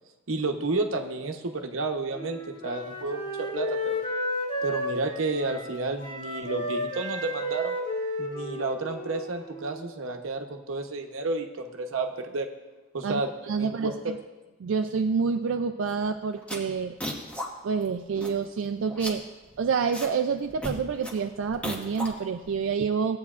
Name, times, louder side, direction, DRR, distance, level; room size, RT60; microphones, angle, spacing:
voice 1, 0.3-4.0 4.6-7.7 8.2-12.5 12.9-13.3 13.6-14.1, right 3 dB, 90° right, 4 dB, 0.9 m, -31 dB
Wind instrument woodwind instrument, 2.1-9.9, left 1 dB, 40° left, 2.4 m, -33 dB
voice 2, 13.5-14.2 14.6-17.0 17.6-19.2 19.6-23.2, right 5 dB, 70° right, 5 dB, 0.3 m, -28 dB
sound 1, 15.9-16.1 16.4-17.5 17.8-17.9 18.1-18.6 18.9-20.1 20.4-22.6, equal, 5° left, 1.0 m, -36 dB
16.0 x 8.6 x 2.4 m, 1.1 s
head